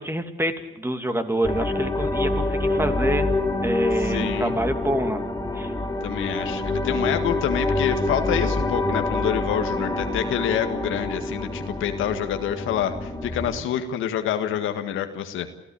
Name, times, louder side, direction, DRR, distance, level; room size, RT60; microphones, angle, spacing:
voice 1, 0.0-3.3 3.6-5.2 5.5-5.7, right 1 dB, 10° right, 7 dB, 2.7 m, -27 dB
sound 1, 1.4-13.6, left 2 dB, 15° left, 4.3 m, -26 dB
voice 2, 4.0-4.6 6.0-15.5, left 9 dB, 85° left, 7 dB, 1.8 m, -27 dB
28.0 x 15.0 x 8.9 m, 0.99 s
cardioid pair, 90°, 20 cm